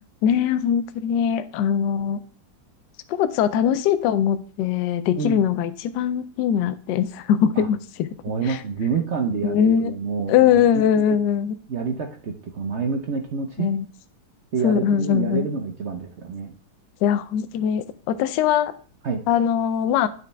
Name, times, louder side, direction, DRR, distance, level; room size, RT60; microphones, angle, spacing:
voice 1, 0.2-2.2 3.1-8.2 8.4-8.6 9.4-10.0 10.3-11.5 13.6-13.8 14.6-15.5 17.0-18.7 19.3-20.1, left 9 dB, 75° left, 11 dB, 1.1 m, -21 dB
voice 2, 8.2-11.2 11.7-13.7 14.5-16.5 19.0-19.2, right 5 dB, 65° right, 4 dB, 0.7 m, -28 dB
9.1 x 5.7 x 3.3 m, 0.42 s
omnidirectional pair, 2.0 m